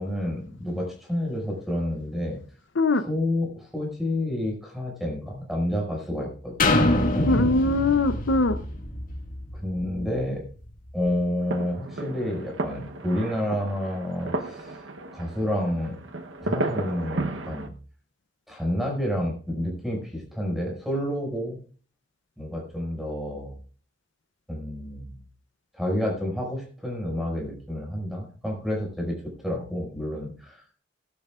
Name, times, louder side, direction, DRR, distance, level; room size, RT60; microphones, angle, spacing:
voice 1, 0.0-2.4 2.9-6.7 7.1-7.5 9.6-10.4 10.9-14.8 15.1-16.0 16.4-17.7 18.5-21.6 22.4-23.6 24.5-25.2 25.7-30.6, left 1 dB, ahead, -1 dB, 5.7 m, -29 dB
sound 1, 6.6-10.4 10.9-11.0, left 2 dB, 45° left, 2.0 m, -25 dB
voice 2, 7.3-8.6, left 2 dB, 75° left, 11 dB, 0.7 m, -21 dB
sound 2, 11.4-17.7, right 2 dB, 85° right, 1.0 m, -33 dB
18.5 x 12.0 x 2.4 m, 0.40 s
head